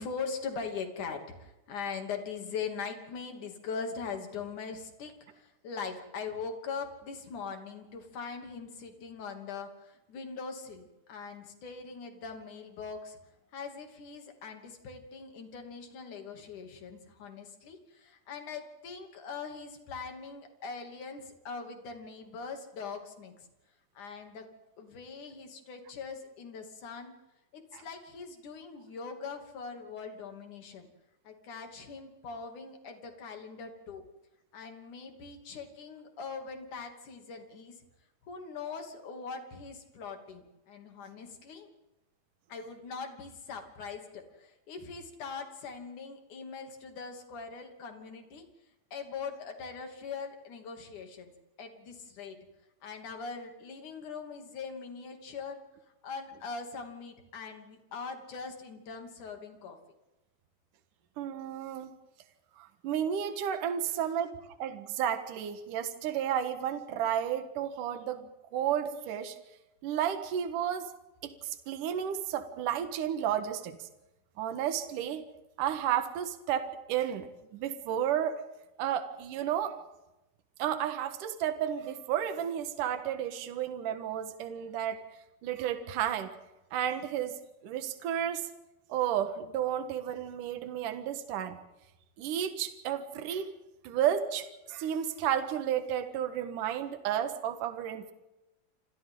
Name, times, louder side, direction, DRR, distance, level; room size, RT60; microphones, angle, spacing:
voice 1, 0.0-13.2 13.5-23.3 24.0-24.5 24.8-27.1 27.5-30.9 31.2-34.0 34.5-37.8 38.2-41.7 42.5-48.5 48.9-51.3 51.6-52.4 52.8-55.6 56.0-59.8 63.9-64.1, left 5 dB, 60° left, 4 dB, 4.2 m, -41 dB
voice 2, 61.2-61.9 62.6-68.3 68.5-69.4 69.8-70.9 71.2-73.9 74.4-75.2 75.6-77.3 77.5-78.4 78.8-79.8 80.6-85.0 85.4-86.3 86.7-87.3 87.6-88.5 88.9-91.6 92.2-93.5 93.8-98.1, right 10 dB, 70° right, 8 dB, 3.0 m, -32 dB
28.5 x 27.0 x 3.9 m, 0.96 s
omnidirectional pair, 4.1 m